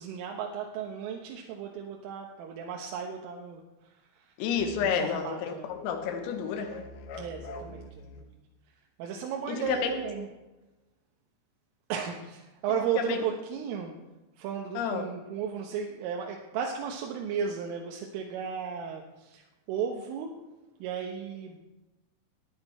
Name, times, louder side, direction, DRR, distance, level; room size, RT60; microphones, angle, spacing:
voice 1, 0.0-3.6 4.2-4.3 4.8-5.7 7.2-7.9 8.2-8.3 9.0-10.3 11.9-13.9 14.4-20.4 20.8-21.6, right 7 dB, 80° right, 0 dB, 3.8 m, -34 dB
voice 2, 4.4-6.8 9.5-9.9 13.0-13.2 14.8-15.0, left 7 dB, 90° left, 5 dB, 4.0 m, -30 dB
sound 1, 4.6-5.0 5.7-8.3 9.6-10.3, left 3 dB, 65° left, 2.7 m, -44 dB
19.0 x 11.0 x 4.3 m, 1.1 s
omnidirectional pair, 5.8 m